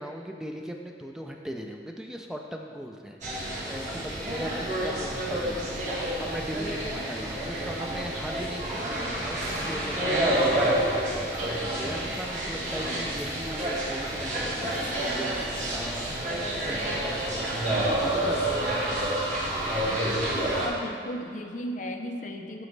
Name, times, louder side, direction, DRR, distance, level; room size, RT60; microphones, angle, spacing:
voice 1, 0.0-3.2 3.6-5.8 6.2-10.9 11.2-16.2 16.7-18.7, equal, 5° right, 2 dB, 0.4 m, -39 dB
sound 1, 3.2-20.7, right 1 dB, 45° right, 1.4 m, -29 dB
voice 2, 20.3-22.7, left 1 dB, 45° left, 4 dB, 0.5 m, -35 dB
9.1 x 5.9 x 3.3 m, 2.3 s
head